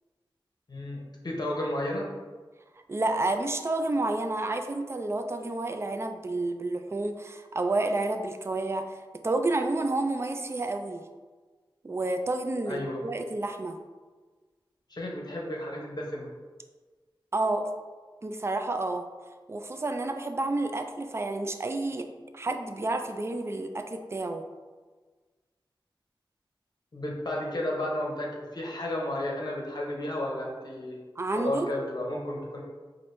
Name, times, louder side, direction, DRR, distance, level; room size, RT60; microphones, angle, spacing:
voice 1, 0.7-2.1 12.7-13.0 14.9-16.3 26.9-31.0 31.3-32.6, left 1 dB, 50° left, -3 dB, 0.7 m, -32 dB
voice 2, 2.9-9.0 9.2-11.1 11.8-13.8 17.3-17.7 18.2-19.1 19.5-22.1 22.3-24.4 31.2-31.7, right 2 dB, 30° right, 6 dB, 0.3 m, -30 dB
4.4 x 2.6 x 3.1 m, 1.4 s
wide cardioid pair, 75°, 9 cm